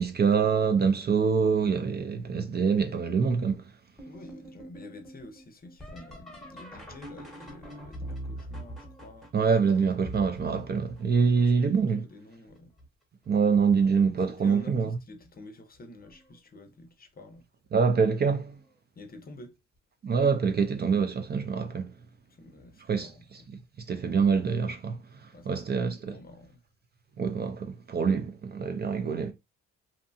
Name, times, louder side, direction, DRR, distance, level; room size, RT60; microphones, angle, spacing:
voice 1, 0.0-3.6 9.3-12.1 13.3-15.0 17.7-18.6 20.0-22.0 22.9-23.6 23.9-26.2 27.2-29.3, right 5 dB, 35° right, 0.4 m, -25 dB
sound 1, 4.0-11.7 12.3-12.9 13.3-14.0 15.2-15.3 16.0-16.4 18.5-18.6 21.0-21.1, right 1 dB, ahead, 1.0 m, -44 dB
voice 2, 4.1-9.3 11.2-11.7 12.1-12.7 14.3-17.4 19.0-19.6 22.4-23.2 25.3-26.6, left 2 dB, 30° left, 0.6 m, -49 dB
2.8 x 2.1 x 2.6 m
cardioid pair, 90°, 30 cm